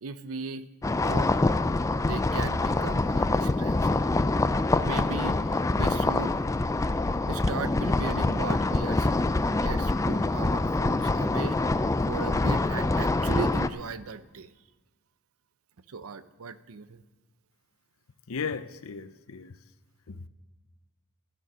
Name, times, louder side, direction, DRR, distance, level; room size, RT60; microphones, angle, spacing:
voice 1, 0.0-0.7 0.9-1.3 2.0-4.0 4.8-6.4 7.3-9.3 9.6-11.6 12.1-14.5 15.9-17.0, right 5 dB, 70° right, 14 dB, 0.6 m, -37 dB
sound 1, 0.8-13.7, left 2 dB, 15° left, 0.3 m, -25 dB
voice 2, 18.3-19.6 20.1-20.3, left 5 dB, 70° left, 13 dB, 0.6 m, -36 dB
12.5 x 11.0 x 6.1 m, 1.3 s
head